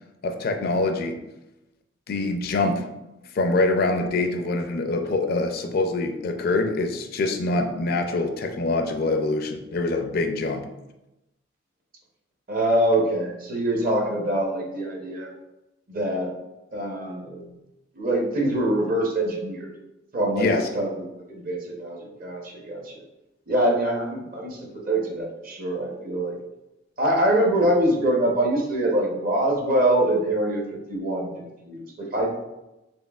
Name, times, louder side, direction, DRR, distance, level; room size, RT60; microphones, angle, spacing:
voice 1, 0.2-1.2 2.1-2.9 3.3-10.7 20.4-20.7, left 2 dB, 50° left, 6 dB, 0.4 m, -24 dB
voice 2, 12.5-15.3 15.9-16.3 16.7-17.4 18.0-19.7 20.1-20.5 20.7-23.0 23.5-26.3 27.0-32.4, right 1 dB, 50° right, 0 dB, 0.8 m, -24 dB
4.3 x 3.3 x 2.3 m, 0.95 s
head